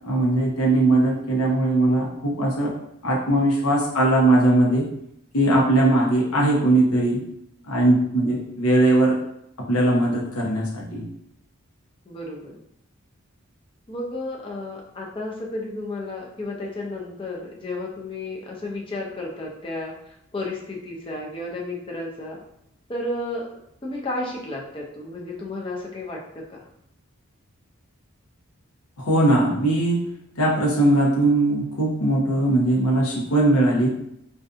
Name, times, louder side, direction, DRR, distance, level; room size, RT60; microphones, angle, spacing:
voice 1, 0.0-2.7 3.0-4.9 5.3-7.2 7.6-9.2 9.7-11.0 29.0-30.1 30.4-33.9, right 1 dB, 90° left, -3 dB, 0.8 m, -20 dB
voice 2, 12.1-12.6 13.9-22.4 22.9-23.5 23.8-26.6, left 2 dB, 25° left, -1 dB, 0.5 m, -32 dB
2.6 x 2.4 x 2.4 m, 0.77 s
head